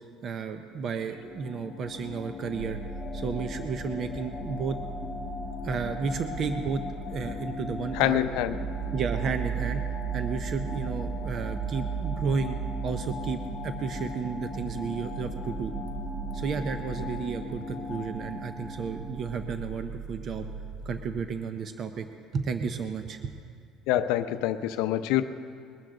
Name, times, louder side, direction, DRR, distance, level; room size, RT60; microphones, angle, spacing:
voice 1, 0.2-2.8 3.1-4.8 5.6-6.8 7.1-8.2 8.9-9.8 10.1-12.6 12.8-15.7 16.3-20.5 20.9-22.1 22.3-23.4, right 5 dB, 30° right, 8 dB, 0.5 m, -32 dB
sound 1, 0.8-19.7, left 4 dB, 15° left, 1.2 m, -39 dB
sound 2, 2.6-21.2, right 6 dB, 80° right, 1.1 m, -37 dB
voice 2, 7.9-8.6 23.9-25.2, left 12 dB, 75° left, 11 dB, 0.6 m, -26 dB
21.0 x 12.5 x 3.8 m, 2.2 s
cardioid pair, 180°, 0 cm